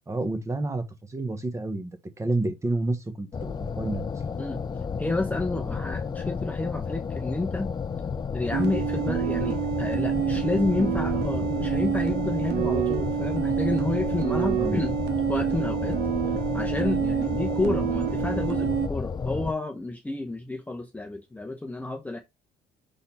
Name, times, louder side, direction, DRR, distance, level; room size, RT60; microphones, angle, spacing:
voice 1, 0.1-0.8 1.1-1.9 2.2-4.0 14.6-14.7, right 2 dB, 15° right, 1.2 m, -29 dB
sound 1, 3.3-19.5, left 5 dB, 25° left, 0.4 m, -32 dB
voice 2, 5.0-7.7 8.3-15.0 15.3-16.0 16.5-22.2, left 2 dB, 10° left, 0.8 m, -30 dB
sound 2, 8.5-18.9, right 11 dB, 80° right, 1.0 m, -28 dB
5.4 x 4.2 x 4.2 m
cardioid pair, 110°, 17 cm